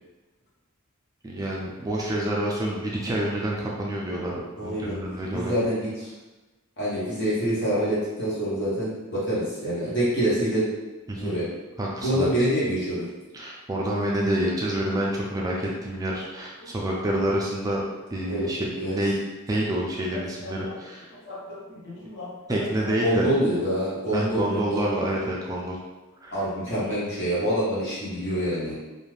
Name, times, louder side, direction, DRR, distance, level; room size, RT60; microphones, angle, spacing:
voice 1, 1.2-4.3 4.6-5.5 11.1-11.3 11.8-12.3 13.3-17.8 18.1-19.2 19.5-21.1 22.5-23.3 24.1-25.8 26.2-26.4, right 1 dB, 15° right, -3 dB, 0.3 m, -28 dB
voice 2, 4.6-5.0 5.3-6.1 6.8-10.7 11.1-11.5 12.0-13.1 16.6-16.7 18.3-18.5 18.7-19.0 20.1-20.8 21.3-24.9 26.3-28.8, equal, 55° left, -8 dB, 1.1 m, -27 dB
2.5 x 2.4 x 3.2 m, 1.2 s
head